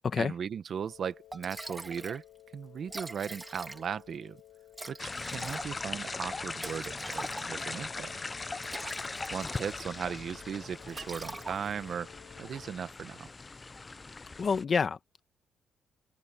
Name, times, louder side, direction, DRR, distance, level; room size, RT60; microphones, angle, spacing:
voice 1, 0.2-2.2 2.5-4.4 4.9-8.1 9.3-12.1 12.4-13.3, right 7 dB, 55° right, 1.3 m, -37 dB
sound 1, 0.7-12.7, left 14 dB, 85° left, 7.7 m, -56 dB
Liquid, 0.9-1.0 1.3-2.2 2.5-2.6 2.8-4.1 4.7-7.8 8.4-10.0 10.3-10.5 10.9-11.9, right 2 dB, 15° right, 3.3 m, -43 dB
sound 2, 5.0-14.6, left 3 dB, 25° left, 0.5 m, -40 dB
voice 2, 14.4-15.2, left 5 dB, 40° left, 1.4 m, -28 dB
cardioid pair, 90°, 0 cm